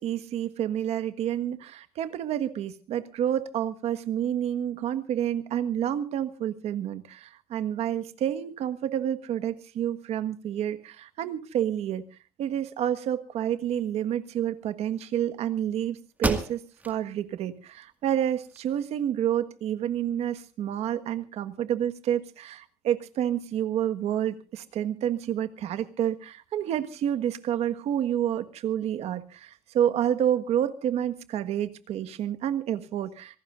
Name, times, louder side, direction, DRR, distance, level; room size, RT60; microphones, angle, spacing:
voice 1, 0.0-12.0 12.4-33.4, right 10 dB, 60° right, 11 dB, 1.5 m, -29 dB
sound 1, 15.6-15.7 16.2-17.0 17.5-17.6 18.1-19.0, right 2 dB, 15° right, 1.9 m, -32 dB
26.0 x 18.0 x 2.5 m, 0.35 s
cardioid pair, 155°, 12 cm